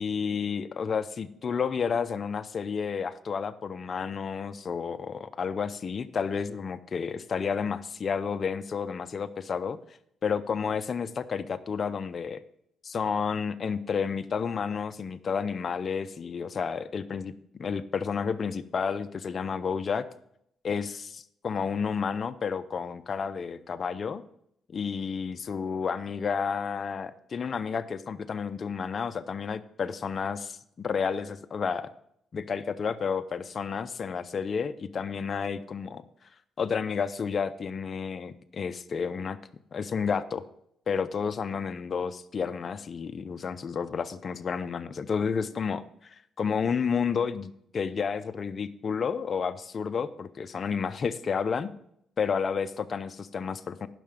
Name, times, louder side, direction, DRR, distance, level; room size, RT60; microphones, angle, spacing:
voice 1, 0.0-9.8 10.2-12.4 12.8-17.3 17.6-20.0 20.6-24.2 24.7-31.9 32.3-36.0 36.6-39.4 39.7-40.4 40.9-51.7 52.2-53.9, left 6 dB, 45° left, 11 dB, 0.5 m, -31 dB
11.0 x 5.6 x 5.2 m, 0.74 s
cardioid pair, 90°, 0 cm